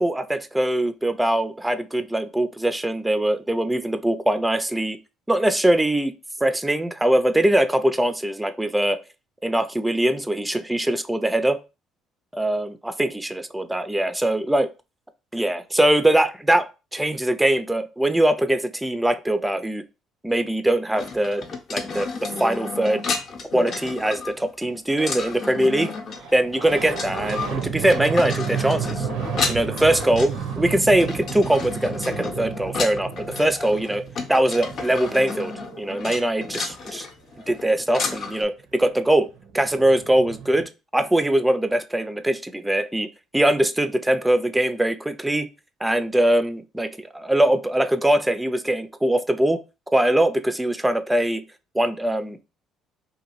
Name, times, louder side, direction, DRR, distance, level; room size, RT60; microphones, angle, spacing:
voice 1, 0.0-5.0 5.3-6.1 6.4-9.0 9.4-11.6 12.3-14.7 15.3-19.8 20.2-21.4 21.7-23.0 23.5-25.9 26.3-29.1 29.5-34.0 34.3-35.5 35.8-37.1 37.5-39.3 39.5-43.1 43.3-45.5 45.8-49.6 49.9-51.4 51.7-52.4, right 1 dB, 10° right, 10 dB, 0.3 m, -22 dB
sound 1, 21.0-38.4, left 4 dB, 55° left, 0.6 m, -32 dB
sound 2, 26.1-36.5 38.6-38.7 38.8-40.6, right 7 dB, 80° right, 0.6 m, -33 dB
2.7 x 2.4 x 2.8 m, 0.30 s
supercardioid pair, 70°, 0 cm